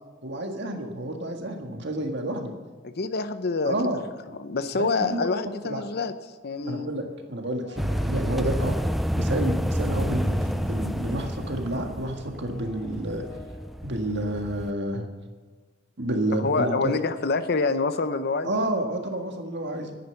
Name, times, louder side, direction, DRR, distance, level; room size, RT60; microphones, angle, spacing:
voice 1, 0.2-2.5 3.6-4.0 4.7-5.3 5.6-5.8 6.6-8.7 9.1-13.2 13.8-15.1 16.0-16.9 18.4-20.0, right 1 dB, 65° right, 4 dB, 1.7 m, -29 dB
voice 2, 2.8-3.7 4.4-6.1 6.4-6.9 16.4-18.5, left 4 dB, 55° left, 11 dB, 0.7 m, -26 dB
sound 1, 6.5-7.2 7.5-9.1 10.0-14.0, equal, 80° left, 3.4 m, -45 dB
sound 2, 7.8-14.7, equal, ahead, 0.4 m, -29 dB
10.5 x 9.3 x 6.6 m, 1.4 s
head